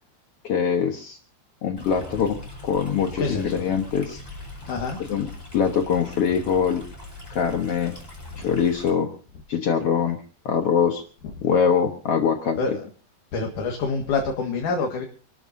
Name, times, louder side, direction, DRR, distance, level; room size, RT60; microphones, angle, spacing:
voice 1, 0.4-1.2 1.6-2.4 2.6-4.2 5.0-5.3 5.5-6.8 7.3-7.9 8.4-9.1 9.5-10.2 10.4-11.0 11.4-12.8, left 7 dB, 80° left, 4 dB, 1.3 m, -23 dB
Stream, 1.8-8.9, left 2 dB, 5° left, 4.0 m, -40 dB
voice 2, 3.2-3.6 4.6-5.0 8.4-8.5 12.6-12.9 13.3-15.0, left 4 dB, 60° left, 1 dB, 2.9 m, -27 dB
28.0 x 13.0 x 2.7 m, 0.38 s
omnidirectional pair, 4.6 m